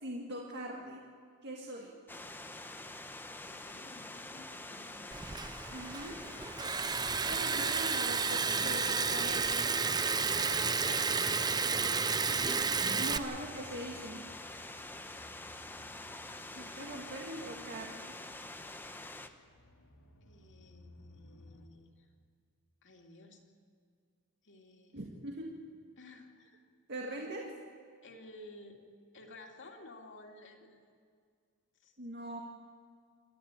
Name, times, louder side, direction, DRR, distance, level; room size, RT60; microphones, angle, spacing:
voice 1, 0.0-1.1 1.4-1.9 5.7-6.2 7.3-9.7 13.0-14.2 16.6-18.2 24.9-25.6 26.9-27.4 32.0-32.4, right 1 dB, 50° right, -1 dB, 2.0 m, -42 dB
sound 1, 2.1-19.3, left 2 dB, 10° left, 0.9 m, -46 dB
voice 2, 3.4-5.2 10.4-12.2 16.3-16.8 20.2-22.1 22.8-23.4 24.4-25.0 26.0-26.6 27.1-27.3 28.0-28.8 29.1-30.9 31.8-32.0, left 2 dB, 55° left, 2 dB, 2.7 m, -54 dB
sound 2, 5.0-21.7, left 1 dB, 85° left, 2.5 m, -58 dB
Liquid, 5.1-13.2, right 5 dB, 20° right, 0.6 m, -31 dB
27.5 x 13.0 x 9.0 m, 2.2 s
head